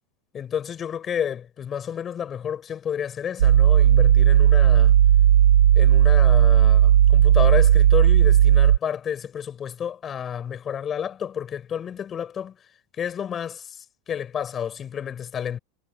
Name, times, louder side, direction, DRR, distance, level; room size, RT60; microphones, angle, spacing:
voice 1, 0.3-5.0 5.8-12.6 13.0-15.6, left 8 dB, 30° left, 7.1 m, -30 dB
sound 1, 3.4-8.8, right 10 dB, 90° right, 1.0 m, -15 dB
hypercardioid pair, 115°, 0 cm